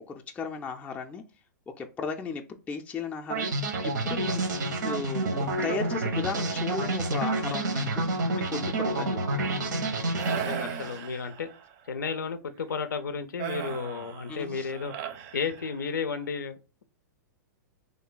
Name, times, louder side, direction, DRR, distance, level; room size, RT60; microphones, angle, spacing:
voice 1, 0.1-1.2 1.8-3.5 3.8-4.4 4.8-9.6 14.3-14.7, left 5 dB, 15° left, 2 dB, 0.4 m, -36 dB
sound 1, 3.3-11.0, right 2 dB, 80° right, 0.7 m, -29 dB
sound 2, 10.2-11.7 13.4-16.1, right 8 dB, 45° right, 0.5 m, -37 dB
voice 2, 10.3-11.5 11.9-14.9 15.3-16.8, left 5 dB, 85° left, 10 dB, 0.4 m, -33 dB
3.2 x 2.2 x 3.8 m, 0.31 s
hypercardioid pair, 115°, 10 cm